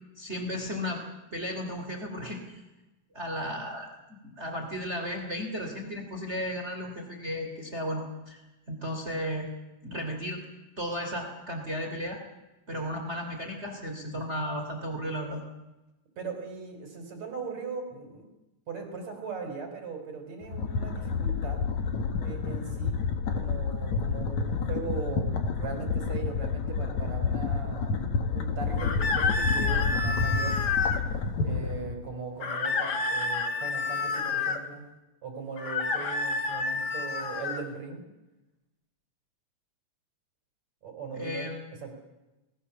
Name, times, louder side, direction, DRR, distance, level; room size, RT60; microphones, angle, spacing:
voice 1, 0.2-1.0 1.3-2.6 3.1-8.4 8.7-9.5 9.8-10.4 10.8-12.2 12.7-15.4 41.1-41.7, equal, 20° right, 4 dB, 3.3 m, -34 dB
voice 2, 16.2-18.3 18.7-21.6 22.2-23.0 23.3-25.3 25.6-30.6 31.4-34.8 35.2-38.0 40.8-41.5 41.8-41.9, right 5 dB, 60° right, 4 dB, 5.2 m, -39 dB
sound 1, 20.4-32.0, left 5 dB, 70° left, 3.2 m, -29 dB
sound 2, 28.8-31.0 32.4-34.6 35.6-37.6, left 4 dB, 40° left, 1.7 m, -29 dB
28.0 x 19.5 x 7.1 m, 1.0 s
omnidirectional pair, 3.4 m